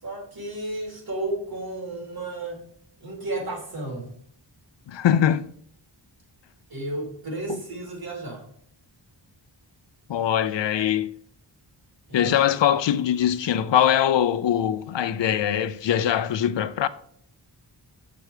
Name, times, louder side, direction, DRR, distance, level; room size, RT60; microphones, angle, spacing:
voice 1, 0.0-2.6 3.0-4.1 6.7-8.4 12.1-12.3, right 2 dB, 55° right, 3.1 m, -33 dB
voice 2, 4.9-5.5 10.1-11.1 12.1-16.9, left 10 dB, 75° left, 0.6 m, -22 dB
7.9 x 6.0 x 4.9 m
wide cardioid pair, 160°, 44 cm